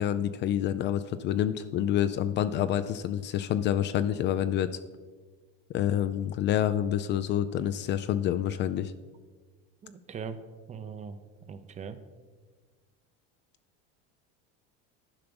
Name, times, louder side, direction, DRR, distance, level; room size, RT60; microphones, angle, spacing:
voice 1, 0.0-4.8 5.7-8.9, left 10 dB, 40° left, 12 dB, 0.4 m, -28 dB
voice 2, 9.8-10.4 10.7-11.2 11.5-12.0, right 6 dB, 25° right, 11 dB, 0.6 m, -40 dB
10.5 x 5.8 x 5.3 m, 1.4 s
supercardioid pair, 130°, 29 cm